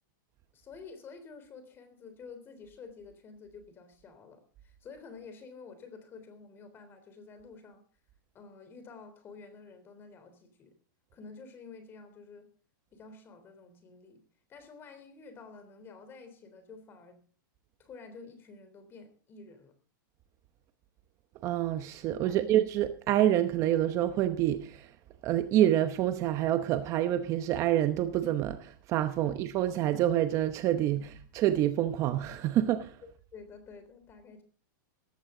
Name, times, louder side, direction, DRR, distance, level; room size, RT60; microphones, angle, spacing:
voice 1, 0.5-7.8 8.3-10.7 11.1-12.5 12.9-14.2 14.5-17.2 17.8-19.7 22.2-22.4 29.2-29.4 33.3-34.4, left 4 dB, 20° left, 3.5 m, -50 dB
voice 2, 21.4-25.0 25.2-33.0, right 12 dB, 30° right, 0.9 m, -27 dB
18.0 x 15.5 x 3.8 m
supercardioid pair, 155°, 11 cm